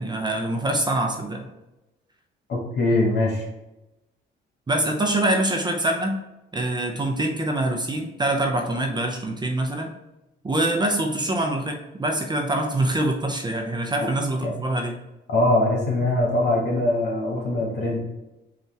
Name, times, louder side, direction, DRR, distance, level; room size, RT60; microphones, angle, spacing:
voice 1, 0.0-1.5 4.7-6.2 6.5-9.9 10.4-15.0, right 1 dB, 20° right, 3 dB, 0.6 m, -24 dB
voice 2, 2.5-3.5 14.4-14.5 15.3-18.0, left 1 dB, 60° left, -1 dB, 1.5 m, -22 dB
5.3 x 2.5 x 3.2 m, 0.96 s
cardioid pair, 90°, 20 cm